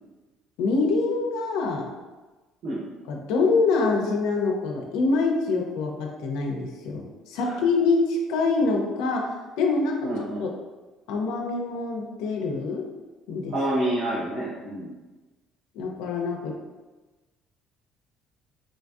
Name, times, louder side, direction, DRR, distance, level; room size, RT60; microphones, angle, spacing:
voice 1, 0.6-1.9 3.1-10.1 10.4-10.5 11.1-12.8 13.3-13.5 15.7-16.5, left 3 dB, 85° left, 1 dB, 0.4 m, -25 dB
voice 2, 10.0-10.5 13.5-14.9, right 1 dB, 60° right, -8 dB, 0.8 m, -28 dB
3.8 x 2.5 x 2.3 m, 1.2 s
cardioid pair, 120°, 0 cm